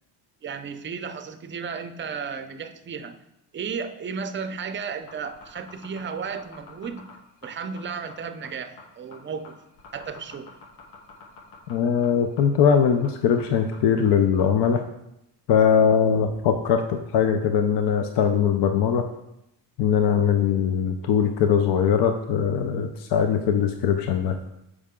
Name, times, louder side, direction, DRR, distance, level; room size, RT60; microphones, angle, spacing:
voice 1, 0.4-3.2 3.5-7.1 7.4-9.6 9.9-10.5, right 6 dB, 25° right, 9 dB, 0.5 m, -34 dB
sound 1, 5.0-14.6, left 4 dB, 85° left, 1.2 m, -47 dB
voice 2, 11.7-14.8 15.5-19.0 19.8-24.3, left 7 dB, 65° left, 6 dB, 0.6 m, -21 dB
6.5 x 4.9 x 3.6 m, 0.83 s
cardioid pair, 100°, 44 cm